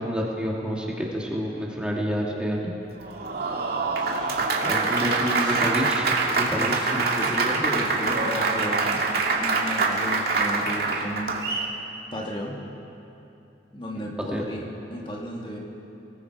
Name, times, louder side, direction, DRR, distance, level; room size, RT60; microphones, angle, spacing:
voice 1, 0.0-2.7 4.6-7.1 14.3-14.7, equal, 5° right, -3 dB, 2.3 m, -29 dB
Applause, 3.0-11.7, right 3 dB, 60° right, 2.2 m, -25 dB
voice 2, 4.0-4.3 5.0-5.6 6.6-9.1 9.4-11.4 12.1-12.6 13.7-15.6, equal, 30° left, -2 dB, 2.7 m, -34 dB
29.5 x 19.5 x 4.8 m, 2.9 s
head